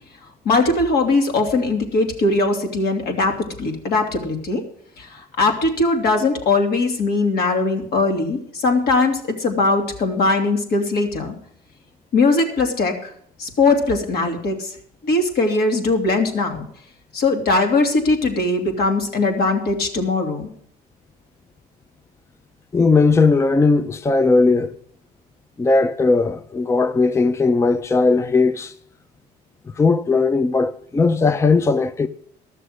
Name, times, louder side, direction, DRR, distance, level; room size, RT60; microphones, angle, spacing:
voice 1, 0.4-4.6 5.0-11.3 12.1-13.1 13.4-14.7 15.0-16.7 17.1-20.5, left 3 dB, 70° left, 2.6 m, -20 dB
voice 2, 22.7-24.8 25.6-28.7 29.8-32.1, left 3 dB, 15° left, 0.5 m, -17 dB
13.5 x 6.6 x 8.0 m
cardioid pair, 110°, 17 cm